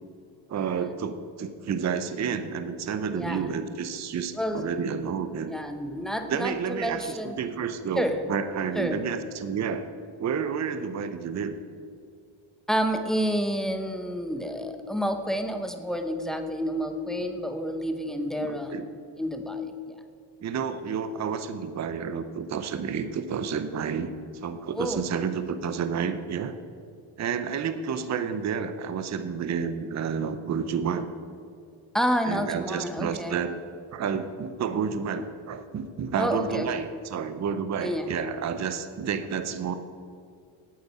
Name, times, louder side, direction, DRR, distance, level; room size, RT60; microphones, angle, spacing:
voice 1, 0.5-5.5 6.3-9.8 10.2-11.6 18.4-18.9 20.4-26.5 27.2-31.1 32.2-33.5 33.9-39.7, right 6 dB, 35° right, 10 dB, 0.7 m, -30 dB
voice 2, 3.0-3.5 4.4-4.7 5.5-7.4 7.9-8.2 8.7-9.0 12.7-18.8 19.2-20.0 24.7-25.0 31.9-33.4 36.2-36.8 37.8-38.1, equal, ahead, 6 dB, 0.8 m, -29 dB
8.9 x 8.3 x 8.3 m, 2.2 s
cardioid pair, 125°, 47 cm